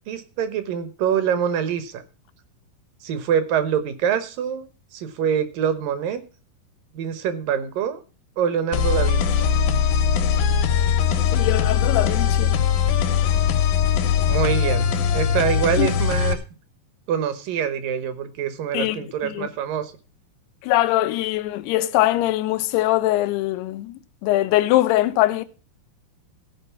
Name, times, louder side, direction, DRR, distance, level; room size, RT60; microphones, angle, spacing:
voice 1, 0.1-2.0 3.0-4.7 4.9-6.2 6.9-8.0 8.4-9.5 14.2-16.4 17.1-19.9, right 8 dB, 70° right, 2.4 m, -25 dB
sound 1, 8.7-16.3, left 7 dB, 70° left, 2.8 m, -20 dB
voice 2, 11.3-12.6 15.8-15.9 18.7-19.5 20.6-25.4, left 16 dB, 85° left, 2.7 m, -22 dB
15.0 x 5.3 x 6.9 m
omnidirectional pair, 4.7 m